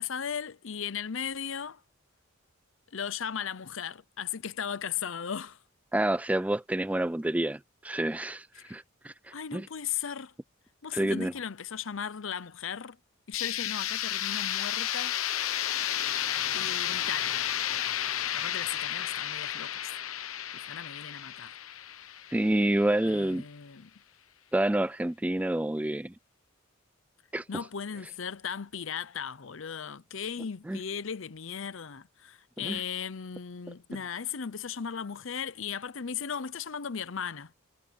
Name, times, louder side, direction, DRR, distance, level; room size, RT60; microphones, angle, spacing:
voice 1, 0.0-1.8 2.9-5.6 8.5-8.7 9.3-10.3 10.8-13.0 13.3-15.2 16.5-17.5 18.3-19.9 20.5-21.5 23.0-23.9 27.5-37.5, left 7 dB, 65° left, 0.7 m, -37 dB
voice 2, 5.9-9.1 9.5-9.7 10.9-11.3 22.3-23.4 24.5-26.1 27.3-27.4 30.7-30.8 32.6-32.8, right 1 dB, 5° right, 0.3 m, -28 dB
sound 1, 13.3-23.1, left 11 dB, 85° left, 1.1 m, -32 dB
head